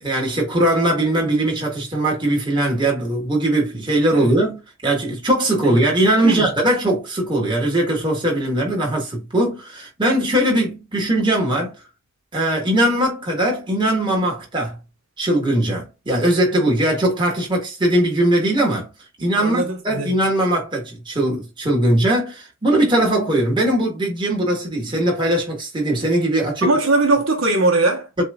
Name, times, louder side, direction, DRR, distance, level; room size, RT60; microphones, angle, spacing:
voice 1, 0.0-11.7 12.3-14.8 15.2-18.9 19.2-26.7 28.2-28.3, right 1 dB, 20° right, 1.8 m, -20 dB
voice 2, 19.4-20.2 26.6-28.1, right 2 dB, 70° right, 1.2 m, -20 dB
7.4 x 2.7 x 2.4 m
head